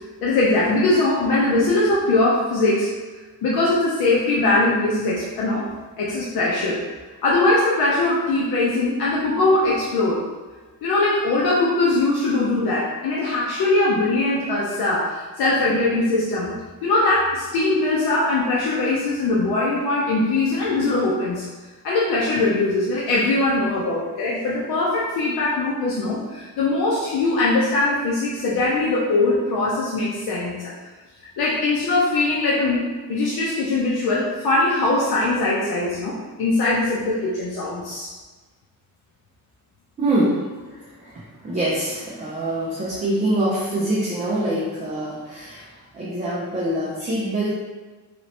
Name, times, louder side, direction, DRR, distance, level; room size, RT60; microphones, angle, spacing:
voice 1, 0.2-2.9 3.4-5.7 6.0-6.8 7.2-10.3 10.8-16.5 16.8-21.5 21.8-30.7 31.4-38.1, left 2 dB, 75° left, -6 dB, 0.7 m, -21 dB
voice 2, 40.0-47.5, right 1 dB, 20° right, -8 dB, 0.5 m, -25 dB
3.0 x 3.0 x 2.8 m, 1.3 s
cardioid pair, 175°, 38 cm